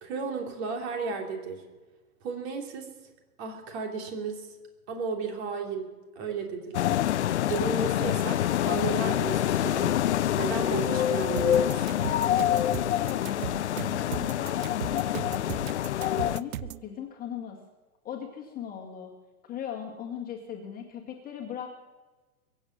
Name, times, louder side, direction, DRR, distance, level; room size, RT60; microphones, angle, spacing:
voice 1, 0.0-1.6 2.2-2.9 3.4-4.5 4.9-5.9 6.1-12.0, right 4 dB, 40° right, 3 dB, 3.3 m, -34 dB
sound 1, 6.7-16.4, left 11 dB, 50° left, 0.6 m, -26 dB
sound 2, 11.4-16.9, right 12 dB, 60° right, 0.5 m, -37 dB
voice 2, 12.6-13.6 14.0-15.7 16.2-17.6 18.0-19.1 19.5-21.7, left 9 dB, 20° left, 0 dB, 1.9 m, -39 dB
22.5 x 8.2 x 7.5 m, 1.2 s
figure-of-eight pair, 110°, 46 cm